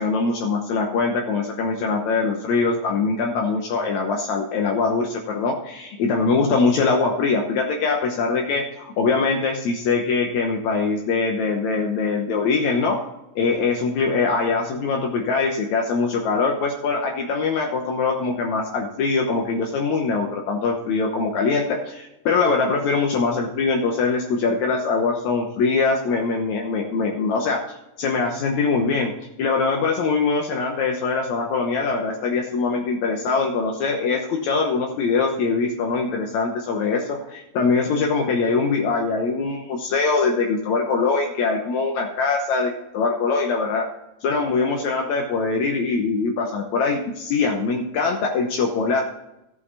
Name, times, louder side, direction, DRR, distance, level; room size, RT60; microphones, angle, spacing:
voice 1, 0.0-13.0 13.4-27.6 28.0-29.1 29.4-43.9 44.2-49.0, left 4 dB, 70° left, 1 dB, 2.3 m, -22 dB
14.0 x 7.7 x 4.0 m, 0.88 s
omnidirectional pair, 3.4 m